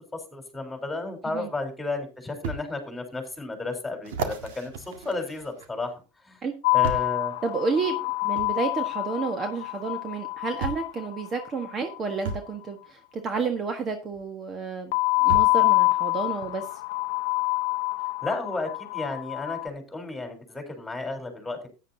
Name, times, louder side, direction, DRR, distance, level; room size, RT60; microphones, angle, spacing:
voice 1, 0.3-5.9 6.2-6.4 6.7-7.3 18.2-21.7, left 2 dB, 10° left, 5 dB, 3.8 m, -33 dB
sound 1, 1.3-1.4 2.4-2.6 3.2-3.3 4.0-5.9 6.8-7.2 8.4-8.5 9.8-9.9 10.6-10.9 12.2-12.5 14.1-14.2 15.3-15.6 16.4-16.5, right 4 dB, 75° right, 1.8 m, -34 dB
sound 2, 6.6-12.0 14.9-19.7, left 24 dB, 75° left, 0.6 m, -26 dB
voice 2, 7.4-14.9 15.2-16.7, right 4 dB, 30° right, 5 dB, 1.4 m, -30 dB
14.0 x 9.7 x 2.8 m, 0.32 s
hypercardioid pair, 105°, 0 cm